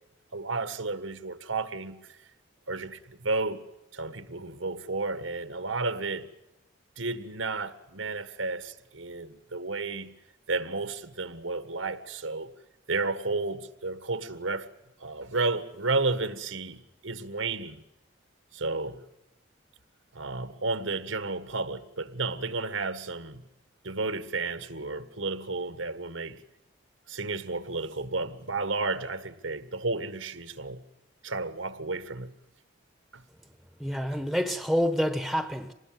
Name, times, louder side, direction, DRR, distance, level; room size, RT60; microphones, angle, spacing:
voice 1, 0.3-2.0 2.7-3.6 3.9-6.3 7.0-10.1 10.5-12.5 12.9-14.7 15.0-17.8 18.5-19.0 20.1-23.4 23.8-26.4 27.1-30.8 31.2-32.3 33.1-33.2, right 3 dB, 80° right, 1.7 m, -32 dB
voice 2, 33.8-35.7, equal, ahead, 1.2 m, -27 dB
26.0 x 20.0 x 7.7 m
head